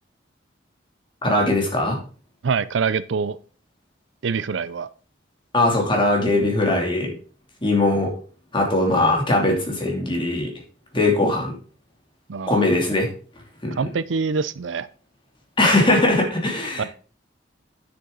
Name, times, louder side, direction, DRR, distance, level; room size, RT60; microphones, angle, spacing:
voice 1, 1.2-2.0 5.5-7.1 7.6-8.1 8.5-10.5 10.9-11.5 12.5-13.1 13.6-13.8 15.6-16.9, left 2 dB, 30° left, 0 dB, 2.7 m, -20 dB
voice 2, 2.4-3.4 4.2-4.9 12.3-12.7 13.8-14.9 16.8-16.9, right 5 dB, 85° right, 17 dB, 0.5 m, -25 dB
9.3 x 7.0 x 3.8 m, 0.40 s
head